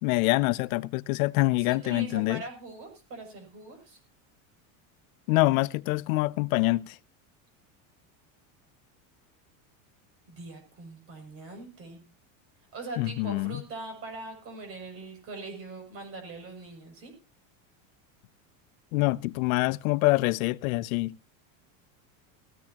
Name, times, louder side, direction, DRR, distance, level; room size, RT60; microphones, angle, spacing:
voice 1, 0.0-2.4 5.3-6.9 13.0-13.6 18.9-21.1, left 21 dB, 75° left, 0.7 m, -25 dB
voice 2, 1.6-4.0 10.3-12.0 12.7-17.1, right 3 dB, 35° right, 7.1 m, -42 dB
18.5 x 15.0 x 2.9 m
cardioid pair, 170°, 42 cm